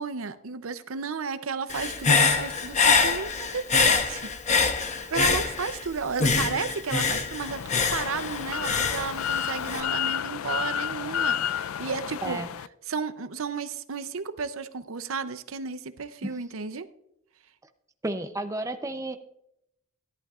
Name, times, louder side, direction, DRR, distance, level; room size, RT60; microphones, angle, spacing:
voice 1, 0.0-4.3 5.1-12.4 12.9-16.9, right 5 dB, 70° right, 12 dB, 0.6 m, -33 dB
Human voice / Breathing, 1.7-5.9 6.2-9.8, left 4 dB, 35° left, 0.9 m, -24 dB
sound 1, 7.4-12.7, left 9 dB, 75° left, 0.4 m, -31 dB
voice 2, 18.0-19.2, right 2 dB, 15° right, 7 dB, 0.6 m, -32 dB
17.0 x 11.0 x 2.4 m, 0.79 s
head